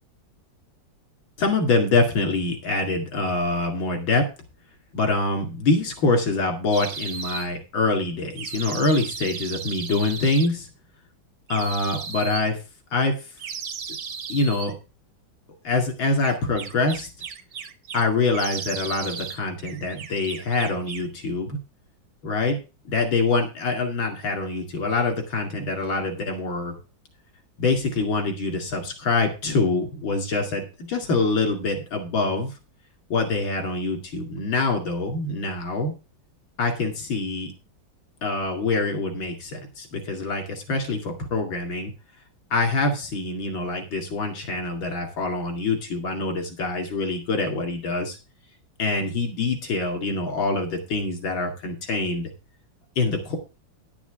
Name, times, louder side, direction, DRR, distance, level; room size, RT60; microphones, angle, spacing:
voice 1, 1.4-4.2 4.9-10.7 11.5-12.6 12.9-13.1 14.3-14.7 15.6-17.1 17.9-21.6 22.2-22.6 22.9-26.8 27.6-32.5 33.1-35.9 36.6-37.5 38.2-41.9 42.5-48.2 48.8-52.3 53.0-53.4, left 3 dB, 80° left, 4 dB, 3.0 m, -25 dB
sound 1, 6.7-7.5 8.4-10.5 11.5-12.5 13.4-14.7 16.2-18.1 18.3-19.4 19.6-21.1, right 6 dB, 90° right, 2.0 m, -35 dB
11.0 x 6.1 x 6.0 m, 0.31 s
omnidirectional pair, 2.1 m